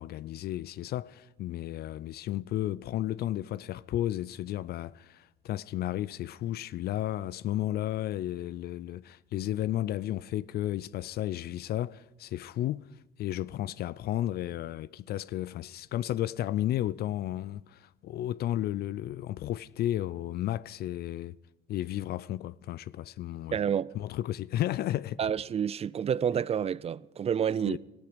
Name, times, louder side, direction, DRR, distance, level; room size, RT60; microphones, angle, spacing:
voice 1, 0.0-12.9 13.2-21.4 21.7-23.6 24.0-25.2 27.7-27.8, left 13 dB, 55° left, 0.4 m, -33 dB
voice 2, 23.5-23.9 25.2-27.8, right 8 dB, 30° right, 0.5 m, -29 dB
17.5 x 16.0 x 5.0 m
supercardioid pair, 85°, 19 cm